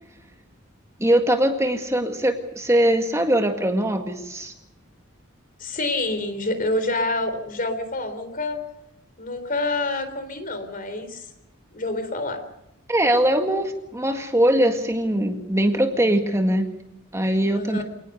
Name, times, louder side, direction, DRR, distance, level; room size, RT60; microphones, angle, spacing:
voice 1, 1.0-4.5 12.9-16.7 17.1-17.8, right 1 dB, 15° right, 5 dB, 1.8 m, -21 dB
voice 2, 5.6-8.6 9.2-11.3 11.7-12.4 17.5-17.8, left 2 dB, 40° left, 9 dB, 3.8 m, -27 dB
27.5 x 19.5 x 6.7 m, 0.90 s
head